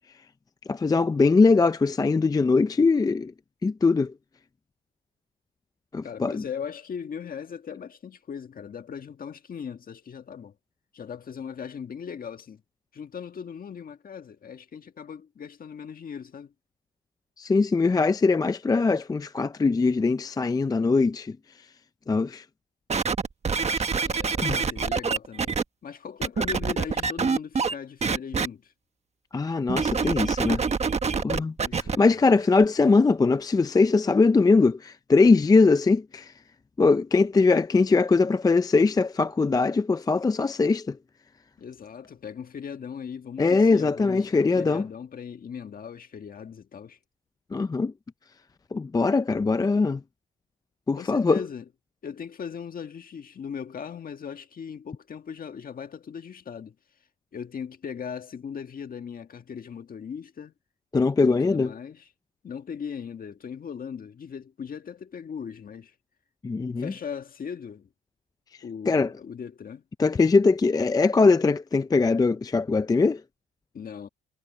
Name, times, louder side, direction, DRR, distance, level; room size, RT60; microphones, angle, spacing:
voice 1, 0.7-3.3 3.6-4.1 5.9-6.4 17.4-21.4 22.1-22.5 23.7-24.1 24.4-24.7 29.3-30.6 31.2-36.3 36.8-41.0 43.4-44.9 47.5-47.9 48.7-50.0 50.9-51.4 60.9-61.7 66.4-66.9 68.9-69.1 70.0-73.2, left 4 dB, 20° left, 0.5 m, -21 dB
voice 2, 6.0-10.5 10.9-12.6 12.9-16.5 24.1-25.5 25.8-28.7 31.6-32.3 41.6-47.0 51.0-51.7 52.0-56.8 57.3-60.5 61.2-62.1 62.4-65.9 66.8-67.9 68.6-69.8 73.7-74.1, left 7 dB, 45° left, 1.7 m, -38 dB
sound 1, 22.9-25.6 26.2-27.7 28.0-28.5 29.7-32.0 32.6-32.7, right 5 dB, 35° right, 1.4 m, -26 dB
cardioid pair, 90°, 20 cm